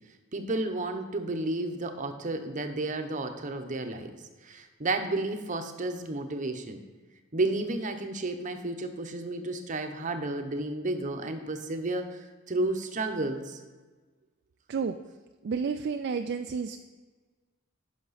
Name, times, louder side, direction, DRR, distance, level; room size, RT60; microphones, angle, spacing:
voice 1, 0.3-6.8 7.3-13.6, right 2 dB, 40° right, 6 dB, 0.8 m, -32 dB
voice 2, 15.4-16.8, right 5 dB, 55° right, 6 dB, 0.4 m, -30 dB
10.5 x 6.0 x 4.1 m, 1.4 s
head